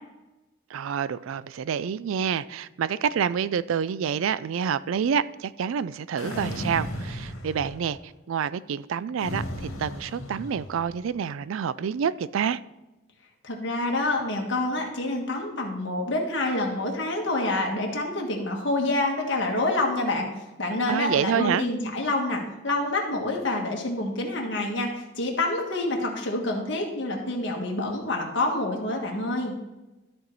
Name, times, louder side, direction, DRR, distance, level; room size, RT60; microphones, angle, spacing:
voice 1, 0.7-12.6 20.9-21.7, right 7 dB, 75° right, 0.3 m, -28 dB
sound 1, 6.2-8.0 9.2-11.0, equal, 85° left, 1.7 m, -35 dB
voice 2, 13.4-20.3 20.6-29.5, left 2 dB, 55° left, 1.6 m, -27 dB
13.0 x 4.5 x 4.0 m
head